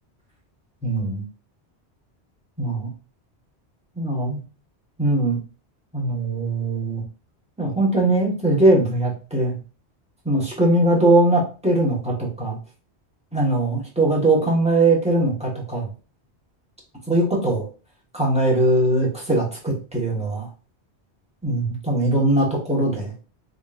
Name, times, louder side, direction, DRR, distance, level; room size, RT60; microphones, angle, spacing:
voice 1, 0.8-1.2 2.6-2.9 4.0-4.4 5.0-5.4 5.9-7.0 7.6-9.6 10.2-12.6 13.3-15.9 17.1-17.6 18.1-20.5 21.4-23.1, right 2 dB, 5° right, -4 dB, 1.3 m, -20 dB
3.8 x 3.7 x 2.5 m, 0.35 s
omnidirectional pair, 1.1 m